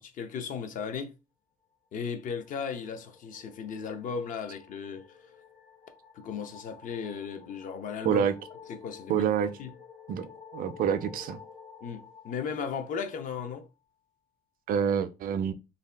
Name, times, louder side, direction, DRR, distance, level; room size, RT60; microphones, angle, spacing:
voice 1, 0.1-1.1 1.9-5.0 6.1-8.2 8.7-9.3 9.6-9.7 11.8-13.7, left 6 dB, 50° left, 0.6 m, -36 dB
sound 1, 2.2-13.6, left 6 dB, 70° left, 1.3 m, -51 dB
voice 2, 9.1-9.5 10.1-11.4 14.7-15.5, right 8 dB, 55° right, 0.4 m, -27 dB
2.7 x 2.2 x 3.2 m
cardioid pair, 110°, 17 cm